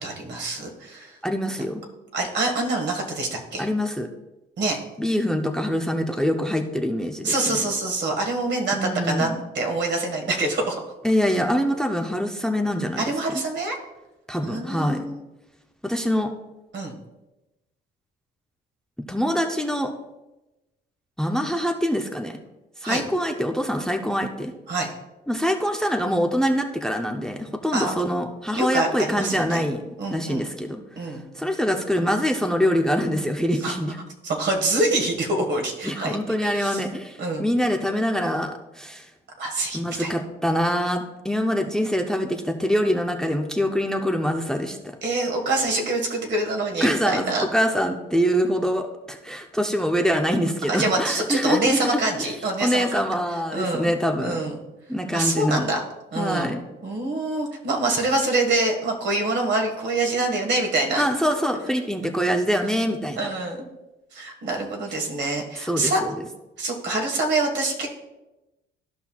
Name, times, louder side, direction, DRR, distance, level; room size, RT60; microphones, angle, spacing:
voice 1, 0.0-1.2 2.1-3.7 4.6-4.8 7.2-10.8 13.0-13.8 14.4-15.2 16.7-16.9 22.8-23.0 24.7-24.9 27.7-28.0 28.5-29.6 30.0-30.5 31.0-31.2 33.6-33.7 34.2-36.2 36.4-36.8 37.2-37.4 39.4-40.1 45.0-47.4 50.7-53.0 53.5-53.9 54.2-54.6 55.1-55.8 56.1-56.5 56.8-61.0 63.2-63.6 64.1-66.0 66.6-68.0, right 2 dB, 60° right, 2 dB, 1.7 m, -25 dB
voice 2, 1.2-1.8 3.6-4.1 5.0-7.7 8.7-9.4 11.0-13.0 13.3-13.4 14.3-15.1 15.8-16.3 19.1-19.9 21.2-22.4 22.8-24.5 25.3-29.8 30.1-34.0 35.8-39.1 39.7-45.0 46.8-52.3 52.6-54.4 54.9-55.7 56.2-56.6 61.0-63.2 65.6-66.1, equal, 5° left, 5 dB, 0.6 m, -24 dB
14.0 x 5.6 x 2.3 m, 1.0 s
cardioid pair, 90°, 20 cm